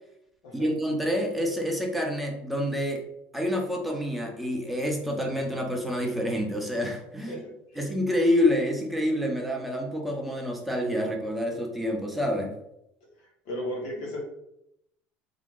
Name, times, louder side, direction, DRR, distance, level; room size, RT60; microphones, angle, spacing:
voice 1, 0.5-3.0 3.3-7.4 7.8-12.5, left 1 dB, ahead, 0 dB, 0.8 m, -27 dB
voice 2, 7.3-7.9 13.0-14.2, equal, 85° left, -1 dB, 1.4 m, -36 dB
3.7 x 2.8 x 3.8 m, 0.80 s
cardioid pair, 135°, 4 cm